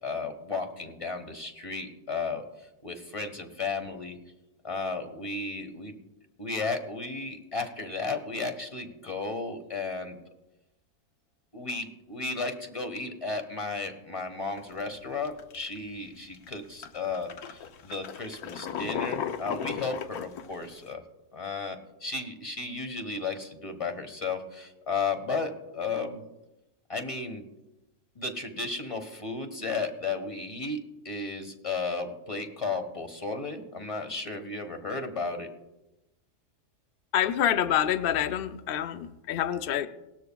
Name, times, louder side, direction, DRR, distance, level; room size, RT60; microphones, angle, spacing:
voice 1, 0.0-2.4 2.8-4.2 4.6-6.0 6.4-10.2 11.5-21.0 21.3-26.2 26.9-27.5 28.1-35.5, left 4 dB, 25° left, 6 dB, 1.1 m, -34 dB
sound 1, 14.6-14.8 15.2-15.8 16.3-16.5 16.8-20.9, left 8 dB, 80° left, 1.3 m, -35 dB
voice 2, 37.1-39.9, left 10 dB, 60° left, 10 dB, 0.6 m, -27 dB
18.5 x 12.5 x 2.3 m, 0.97 s
omnidirectional pair, 1.6 m